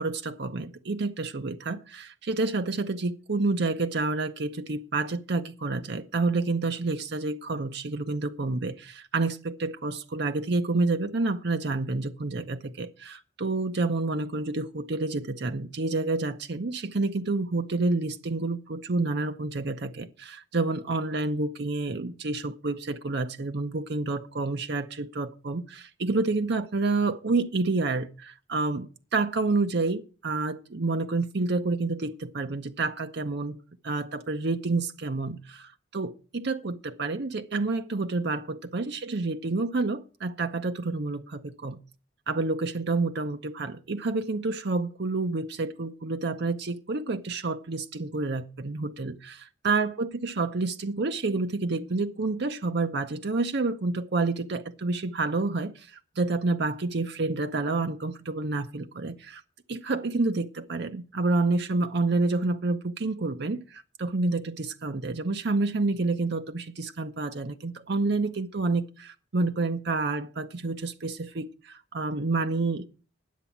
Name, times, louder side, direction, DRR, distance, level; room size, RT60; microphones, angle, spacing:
voice 1, 0.0-33.6 33.8-41.8 42.3-59.4 59.7-72.9, right 3 dB, 60° right, 0.7 m, -29 dB
10.5 x 8.1 x 7.2 m
head